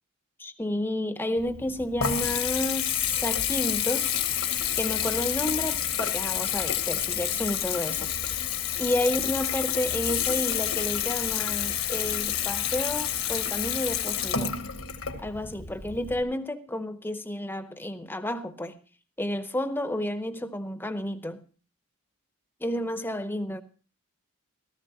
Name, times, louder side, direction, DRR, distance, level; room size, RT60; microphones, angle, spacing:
voice 1, 0.4-4.2 4.8-8.4 8.8-14.6 15.2-18.8 19.2-21.4 22.6-23.6, left 1 dB, 10° left, 0.7 m, -31 dB
Water tap faucet / Bathtub (filling or washing) / Trickle dribble, 1.4-16.2, left 10 dB, 65° left, 1.3 m, -29 dB
16.0 x 14.0 x 2.9 m
head